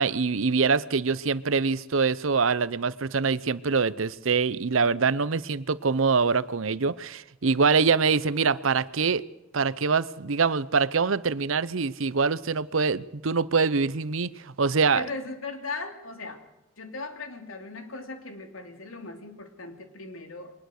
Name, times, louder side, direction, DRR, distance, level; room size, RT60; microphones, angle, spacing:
voice 1, 0.0-9.2 9.5-15.0, right 5 dB, 75° right, 17 dB, 0.8 m, -24 dB
voice 2, 14.9-16.4 16.8-20.5, left 3 dB, 85° left, 6 dB, 2.9 m, -38 dB
22.5 x 20.0 x 6.5 m, 0.93 s
head